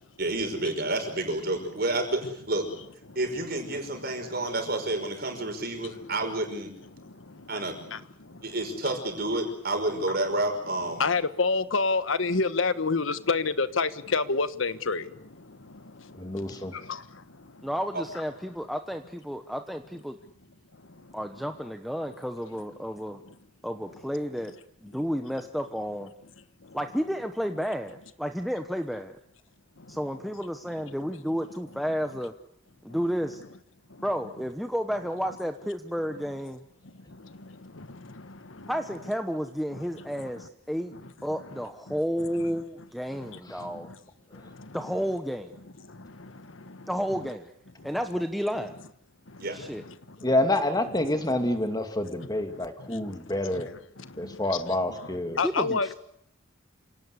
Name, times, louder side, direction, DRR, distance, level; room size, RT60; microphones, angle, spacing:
voice 1, 0.2-2.7 3.2-6.7 7.5-8.0 8.4-11.1 17.9-18.0 49.4-49.6, right 2 dB, 50° right, 5.7 m, -29 dB
voice 2, 7.0-7.6 7.9-8.4 11.0-17.6 20.9-21.2 26.6-26.8 29.8-30.0 33.9-34.0 37.1-38.7 40.3-40.5 41.9-42.0 43.1-44.0 44.3-44.8 45.8-46.9 47.8-47.9 49.3-49.5 50.1-50.3 52.2-55.9, left 4 dB, 90° left, 1.3 m, -31 dB
voice 3, 16.2-16.7 50.2-53.7 54.2-55.4, left 1 dB, 20° left, 2.4 m, -27 dB
voice 4, 17.6-20.2 21.1-23.2 23.6-24.5 24.8-26.1 26.7-29.2 29.9-32.3 32.8-33.4 34.0-36.6 38.7-40.9 41.2-43.9 44.7-45.6 46.9-47.5 47.8-48.7 49.5-49.8 55.4-55.9, equal, ahead, 1.1 m, -31 dB
27.5 x 18.0 x 8.2 m
head